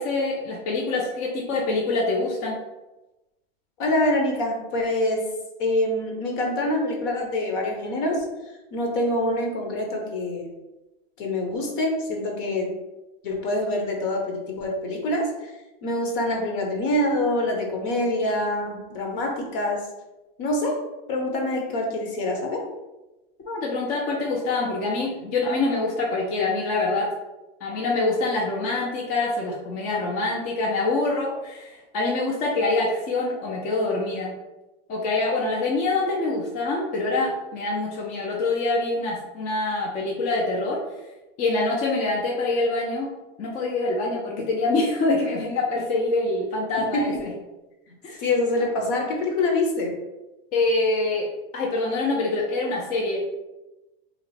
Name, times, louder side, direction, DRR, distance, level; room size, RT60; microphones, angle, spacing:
voice 1, 0.0-2.6 23.5-27.1 27.6-34.3 34.9-40.8 41.4-43.1 43.4-47.3 48.0-48.2 50.5-51.3 51.5-53.2, left 2 dB, 30° left, -2 dB, 0.5 m, -25 dB
voice 2, 3.8-5.3 5.6-8.3 8.7-10.5 11.2-12.8 13.2-15.5 15.8-19.8 20.4-20.8 21.1-22.6 46.8-47.2 48.2-49.9, left 1 dB, 60° left, 1 dB, 1.0 m, -25 dB
2.9 x 2.4 x 4.2 m, 1.0 s
supercardioid pair, 145°, 30 cm